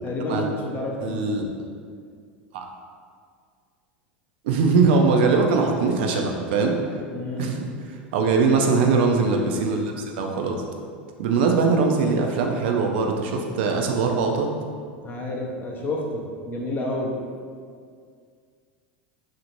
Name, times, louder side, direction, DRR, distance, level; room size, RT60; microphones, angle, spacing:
voice 1, 0.0-1.5 7.1-7.5 15.0-16.2 16.5-17.1, left 2 dB, 35° left, -1 dB, 0.5 m, -30 dB
voice 2, 1.0-1.5 2.5-2.7 4.4-6.8 7.4-7.6 8.1-10.6 11.2-14.5, right 4 dB, 70° right, 2 dB, 0.3 m, -21 dB
2.6 x 2.0 x 2.9 m, 2.1 s
hypercardioid pair, 90°, 6 cm